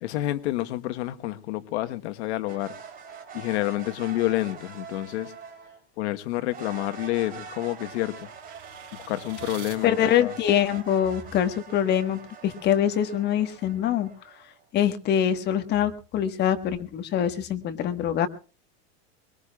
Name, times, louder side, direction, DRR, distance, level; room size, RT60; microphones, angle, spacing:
voice 1, 0.0-2.7 3.3-5.3 6.0-8.3 8.9-10.3, left 16 dB, 75° left, 1.2 m, -29 dB
sound 1, 2.5-5.8 6.5-14.6, right 6 dB, 25° right, 3.5 m, -44 dB
sound 2, 6.2-9.8, right 8 dB, 50° right, 5.2 m, -47 dB
voice 2, 9.8-14.1 14.7-18.3, left 10 dB, 30° left, 1.4 m, -24 dB
23.0 x 21.0 x 2.3 m
supercardioid pair, 165°, 34 cm